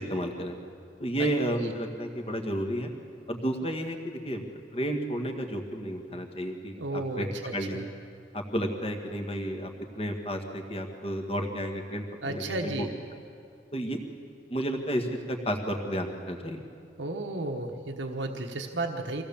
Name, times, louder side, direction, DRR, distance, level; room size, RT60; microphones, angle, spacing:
voice 1, 0.1-0.5 1.0-2.9 3.3-7.3 7.5-7.9 8.3-12.9 13.7-14.0 14.5-16.6, equal, 30° left, 3 dB, 1.8 m, -32 dB
voice 2, 6.8-7.8 12.2-12.9 17.0-19.2, right 2 dB, 85° right, 2 dB, 1.3 m, -33 dB
24.5 x 17.0 x 7.1 m, 2.5 s
head